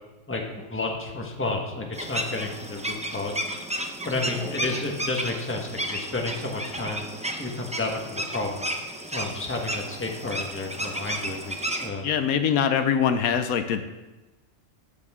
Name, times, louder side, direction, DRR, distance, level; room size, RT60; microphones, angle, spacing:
voice 1, 0.3-3.4 4.0-7.0 7.4-8.6 9.1-12.1, left 2 dB, 10° left, 0 dB, 1.2 m, -31 dB
sound 1, 1.9-11.9, right 1 dB, 10° right, 0.5 m, -33 dB
voice 2, 12.0-13.8, left 7 dB, 80° left, 9 dB, 1.1 m, -23 dB
13.0 x 8.9 x 3.6 m, 1.1 s
omnidirectional pair, 1.5 m